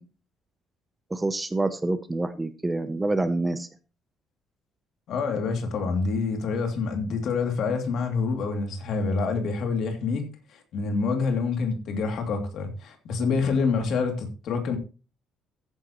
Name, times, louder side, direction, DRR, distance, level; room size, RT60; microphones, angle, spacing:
voice 1, 1.1-3.7, right 2 dB, 10° right, 0.6 m, -27 dB
voice 2, 5.1-14.8, left 4 dB, 55° left, 2.7 m, -27 dB
14.5 x 9.8 x 3.0 m
cardioid pair, 170°, 0 cm